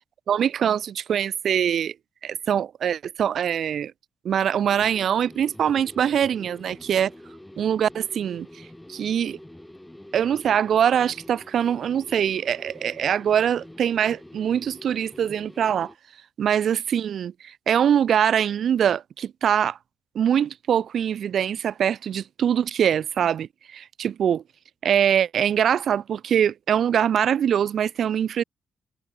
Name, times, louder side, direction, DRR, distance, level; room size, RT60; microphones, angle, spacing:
voice 1, 0.3-1.9 2.2-3.9 4.2-7.1 7.6-8.6 8.9-9.4 10.1-15.9 16.4-19.8 20.1-24.4 24.8-28.4, right 9 dB, 60° right, 2.7 m, -23 dB
sound 1, 4.6-16.0, left 1 dB, 5° left, 4.9 m, -46 dB
cardioid pair, 90°, 0 cm